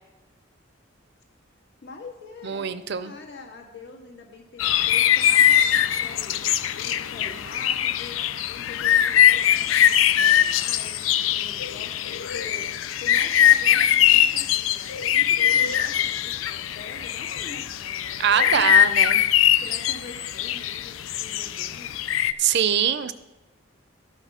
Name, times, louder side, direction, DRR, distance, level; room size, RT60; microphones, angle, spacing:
voice 1, 1.8-6.5 6.8-18.9 19.6-22.0, left 3 dB, 60° left, 1 dB, 1.9 m, -44 dB
voice 2, 2.4-3.1 18.2-19.2 22.4-23.1, right 8 dB, 60° right, 12 dB, 0.5 m, -23 dB
sound 1, 4.6-22.3, left 10 dB, 90° left, 0.4 m, -21 dB
12.5 x 5.9 x 5.7 m, 1.0 s
head